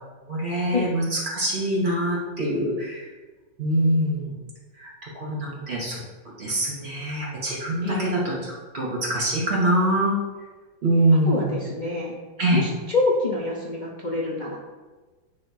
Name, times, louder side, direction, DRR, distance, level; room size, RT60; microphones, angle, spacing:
voice 1, 0.3-3.1 3.6-4.4 4.8-6.0 6.4-10.2 10.8-11.6 12.4-12.6, right 1 dB, 30° right, -5 dB, 2.4 m, -24 dB
voice 2, 7.8-8.1 11.3-12.1 12.5-14.6, left 2 dB, 75° left, -4 dB, 0.4 m, -26 dB
9.8 x 3.4 x 4.7 m, 1.3 s
omnidirectional pair, 2.2 m